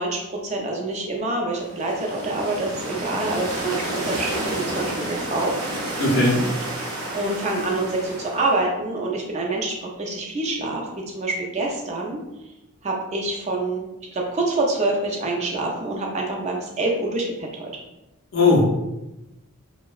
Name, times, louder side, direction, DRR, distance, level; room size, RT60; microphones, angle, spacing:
voice 1, 0.0-5.6 7.1-12.2 12.8-17.8, right 2 dB, 30° right, 0 dB, 0.4 m, -26 dB
sound 1, 1.6-8.7, right 1 dB, 90° right, 0.6 m, -30 dB
voice 2, 6.0-6.4 18.3-18.8, left 2 dB, 55° left, -3 dB, 0.5 m, -18 dB
2.6 x 2.0 x 2.3 m, 0.96 s
head